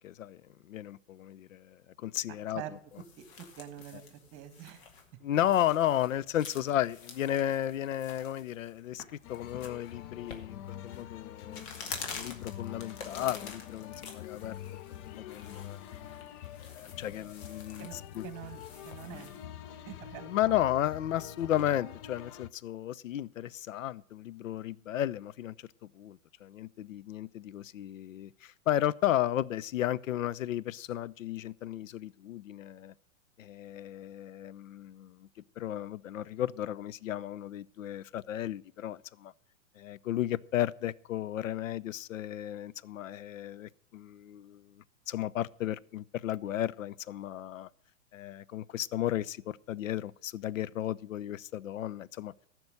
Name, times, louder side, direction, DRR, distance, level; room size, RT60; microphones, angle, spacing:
voice 1, 0.0-2.6 5.2-14.6 15.1-15.8 16.6-18.3 20.2-25.7 25.9-32.9 33.4-35.3 35.6-39.3 39.8-47.7 48.1-52.3, left 12 dB, 70° left, 0.6 m, -34 dB
sound 1, 2.8-19.5, left 5 dB, 50° left, 2.4 m, -48 dB
voice 2, 3.6-4.8 17.8-18.6 18.8-19.3 19.8-20.5, right 11 dB, 35° right, 1.6 m, -45 dB
sound 2, 9.2-22.5, left 10 dB, 25° left, 0.4 m, -46 dB
14.5 x 6.1 x 6.5 m
hypercardioid pair, 115°, 40 cm